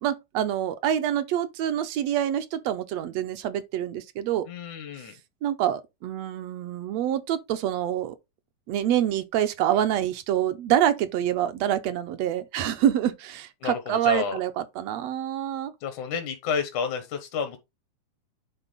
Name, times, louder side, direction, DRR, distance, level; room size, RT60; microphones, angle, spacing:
voice 1, 0.0-4.5 5.4-8.1 8.7-15.7, right 11 dB, 75° right, 1.7 m, -26 dB
voice 2, 4.5-5.1 13.6-14.4 15.8-17.6, left 6 dB, 80° left, 2.6 m, -30 dB
9.9 x 3.9 x 3.9 m
omnidirectional pair, 3.4 m